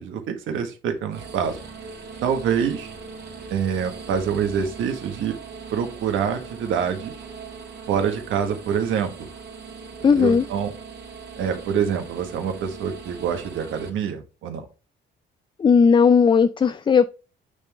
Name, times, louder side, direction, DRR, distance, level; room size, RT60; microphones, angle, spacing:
voice 1, 0.0-1.6 2.2-2.9 3.5-5.3 5.7-7.1 7.9-9.3 10.0-10.7 11.4-14.6, right 7 dB, 80° right, 1.4 m, -26 dB
sound 1, 1.1-13.9, right 5 dB, 55° right, 2.1 m, -40 dB
voice 2, 10.0-10.4 15.6-17.0, left 6 dB, 25° left, 0.4 m, -16 dB
8.1 x 3.6 x 3.3 m
cardioid pair, 90°, 20 cm